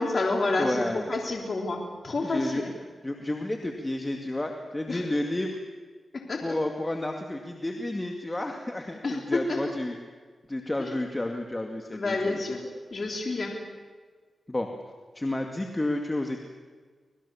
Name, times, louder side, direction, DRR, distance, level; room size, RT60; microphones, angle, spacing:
voice 1, 0.0-0.8 1.1-2.7 4.9-5.0 6.1-6.6 9.0-9.6 10.8-10.9 11.9-13.6, left 2 dB, 55° left, 1 dB, 3.7 m, -29 dB
voice 2, 0.6-1.1 2.2-2.6 3.0-5.6 6.4-10.0 10.5-12.4 14.5-14.7 15.1-16.4, left 1 dB, 20° left, 3 dB, 2.3 m, -31 dB
26.0 x 20.0 x 7.2 m, 1.5 s
cardioid pair, 60°, 0 cm